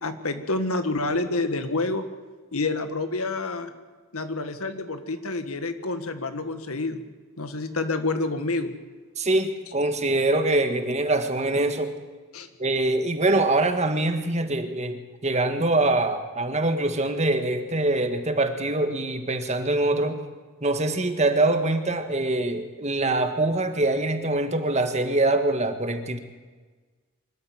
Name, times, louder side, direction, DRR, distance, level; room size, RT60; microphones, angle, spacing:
voice 1, 0.0-2.0 2.5-3.7 4.1-7.0 7.4-8.8 12.3-12.5, left 2 dB, 75° left, 9 dB, 1.8 m, -28 dB
voice 2, 9.2-12.0 12.6-20.2 20.6-26.2, right 2 dB, 30° right, 7 dB, 1.7 m, -24 dB
24.5 x 13.0 x 9.4 m, 1.4 s
head